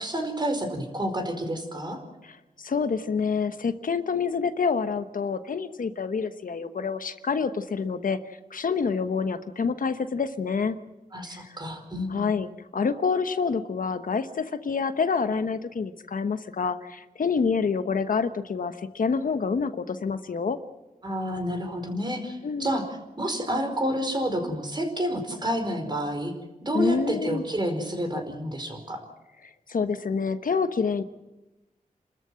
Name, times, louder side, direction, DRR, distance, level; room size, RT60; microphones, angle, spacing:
voice 1, 0.0-2.0 11.1-12.3 21.0-22.8 23.2-26.3 26.6-29.0, equal, 30° right, 5 dB, 4.7 m, -29 dB
voice 2, 2.2-8.2 8.5-10.8 11.3-11.6 12.1-20.6 22.4-22.8 26.7-27.4 29.7-31.0, left 5 dB, 65° left, 10 dB, 1.1 m, -27 dB
29.0 x 13.5 x 7.6 m, 1.0 s
wide cardioid pair, 85°, 15 cm